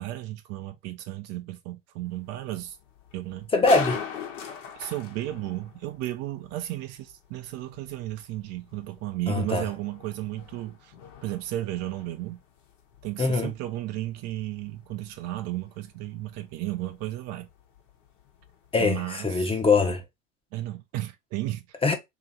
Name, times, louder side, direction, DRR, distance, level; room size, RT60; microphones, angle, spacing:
voice 1, 0.0-2.8 3.1-3.5 4.5-10.9 11.2-12.4 13.0-17.5 18.8-19.6 20.5-21.6, right 15 dB, 40° right, 0.6 m, -34 dB
sound 1, 2.1-18.8, left 7 dB, 70° left, 1.2 m, -43 dB
voice 2, 3.5-4.0 9.3-9.6 13.2-13.5 18.7-20.0 21.8-21.9, left 3 dB, 15° left, 0.8 m, -22 dB
3.0 x 3.0 x 3.9 m
hypercardioid pair, 95°, 38 cm